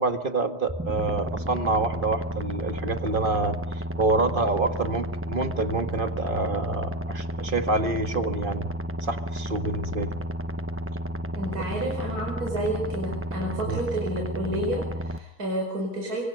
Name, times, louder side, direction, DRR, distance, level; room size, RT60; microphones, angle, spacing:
voice 1, 0.0-8.7 9.0-10.1 13.6-13.8, right 3 dB, 30° right, 7 dB, 1.8 m, -27 dB
sound 1, 0.7-15.2, equal, 15° right, 0.5 m, -32 dB
voice 2, 11.3-16.2, right 1 dB, 60° right, -1 dB, 5.4 m, -30 dB
26.0 x 25.5 x 5.4 m, 0.75 s
omnidirectional pair, 1.9 m